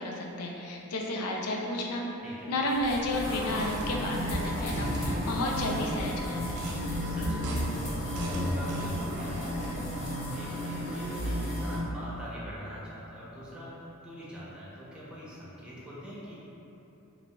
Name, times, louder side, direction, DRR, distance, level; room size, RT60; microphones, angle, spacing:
voice 1, 0.0-2.2 2.5-6.7, left 1 dB, 85° left, 0 dB, 0.5 m, -32 dB
voice 2, 2.2-2.5 7.0-7.6 8.0-9.8 10.3-16.3, equal, 5° right, -8 dB, 0.7 m, -44 dB
sound 1, 2.6-12.2, equal, 65° left, 0.9 m, -42 dB
sound 2, 2.9-10.1, right 1 dB, 85° right, 0.5 m, -39 dB
sound 3, 3.2-11.8, equal, 45° left, 1.3 m, -34 dB
4.8 x 2.5 x 2.3 m, 3.0 s
head